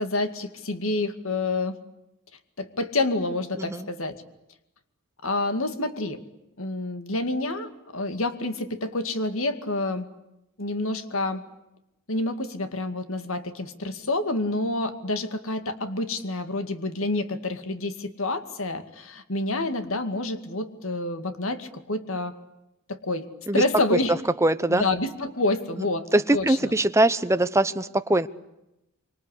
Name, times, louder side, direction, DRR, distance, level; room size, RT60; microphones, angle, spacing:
voice 1, 0.0-1.8 2.6-4.2 5.2-6.2 6.6-10.1 10.6-11.4 12.1-22.3 22.9-23.3 23.5-24.1 24.7-26.1 26.3-26.7, left 2 dB, 65° left, 9 dB, 2.2 m, -28 dB
voice 2, 3.5-3.9 23.5-23.6 23.9-24.0 24.4-24.9 25.8-25.9 26.1-28.3, right 1 dB, 15° right, 11 dB, 0.9 m, -22 dB
26.5 x 25.5 x 8.4 m, 0.89 s
head